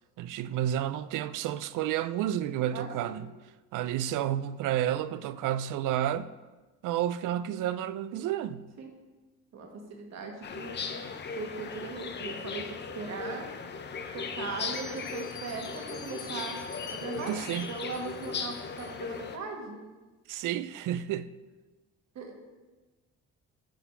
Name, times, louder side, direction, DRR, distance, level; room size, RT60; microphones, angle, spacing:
voice 1, 0.2-3.3 3.7-6.3 6.8-8.7 17.1-17.7 20.3-21.3, right 11 dB, 75° right, 0.5 m, -31 dB
voice 2, 2.7-3.1 8.8-8.9 9.5-10.8 11.4-13.5 14.1-16.6 16.9-17.3 17.7-19.8 22.2-22.3, right 4 dB, 55° right, 1.7 m, -39 dB
sound 1, 10.4-19.4, left 5 dB, 35° left, 0.7 m, -38 dB
Bell, 14.6-19.2, left 4 dB, 60° left, 1.6 m, -49 dB
10.0 x 4.1 x 5.6 m
cardioid pair, 120°, 31 cm